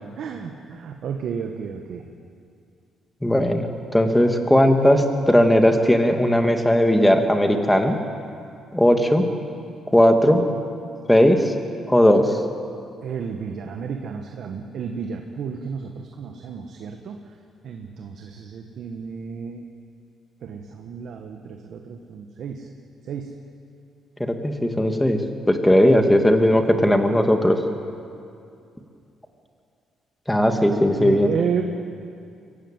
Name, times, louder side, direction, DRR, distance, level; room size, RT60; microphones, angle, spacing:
voice 1, 0.2-2.1 13.0-17.2 17.6-19.7 20.4-22.7 23.0-23.4 30.9-31.6, right 6 dB, 70° right, 4 dB, 1.5 m, -32 dB
voice 2, 3.2-3.7 3.9-8.0 8.7-9.2 9.9-10.4 11.1-11.5 11.9-12.4 24.2-25.2 25.5-27.6 30.3-31.3, left 1 dB, 5° left, 5 dB, 2.3 m, -17 dB
24.0 x 15.5 x 9.1 m, 2.5 s
cardioid pair, 90°, 0 cm